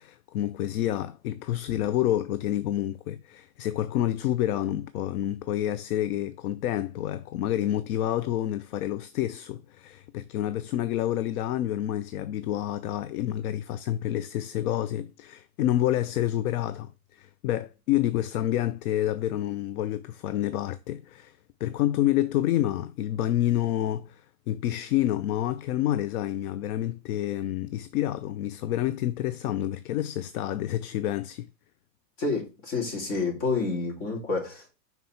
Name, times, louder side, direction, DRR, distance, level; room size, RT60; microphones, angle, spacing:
voice 1, 0.0-31.5, left 13 dB, 65° left, 0.5 m, -28 dB
voice 2, 32.2-34.7, left 3 dB, 40° left, 2.6 m, -29 dB
5.5 x 4.0 x 4.3 m
supercardioid pair, 155°, 47 cm